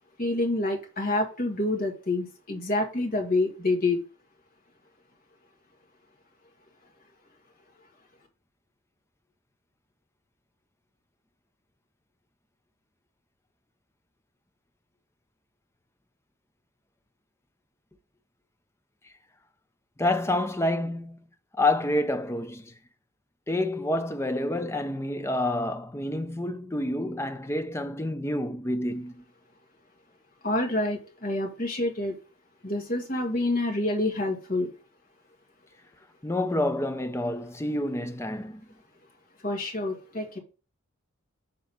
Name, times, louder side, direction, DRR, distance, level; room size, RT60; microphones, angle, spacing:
voice 1, 0.2-4.0 30.4-32.1 32.6-34.7 39.4-40.4, left 2 dB, 40° left, 1.9 m, -27 dB
voice 2, 20.0-21.2 21.5-22.7 23.5-29.2 36.2-38.6, left 1 dB, 10° left, 0.5 m, -28 dB
7.1 x 3.8 x 5.7 m
head